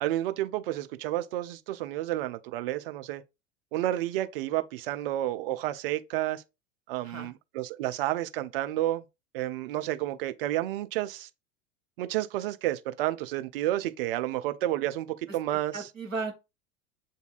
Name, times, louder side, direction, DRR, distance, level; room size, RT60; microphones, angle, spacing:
voice 1, 0.0-3.2 3.7-6.4 6.9-9.0 9.3-11.3 12.0-15.9, right 14 dB, 45° right, 0.5 m, -30 dB
voice 2, 15.5-16.3, right 4 dB, 85° right, 1.2 m, -35 dB
8.0 x 2.7 x 2.4 m
figure-of-eight pair, 80°, 39 cm